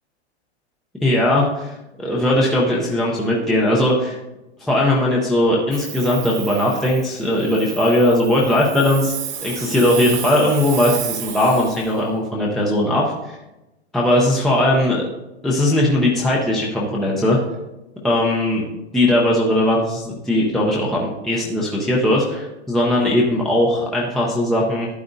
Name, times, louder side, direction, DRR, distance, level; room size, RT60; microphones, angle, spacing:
voice 1, 1.0-4.2 4.6-9.2 9.4-13.4 13.9-15.0 15.4-17.4 18.0-18.6 18.9-24.9, left 1 dB, ahead, -3 dB, 0.5 m, -19 dB
Hiss, 5.7-12.0, right 9 dB, 20° right, 0.9 m, -32 dB
12.0 x 9.0 x 2.6 m, 0.97 s
hypercardioid pair, 150°, 34 cm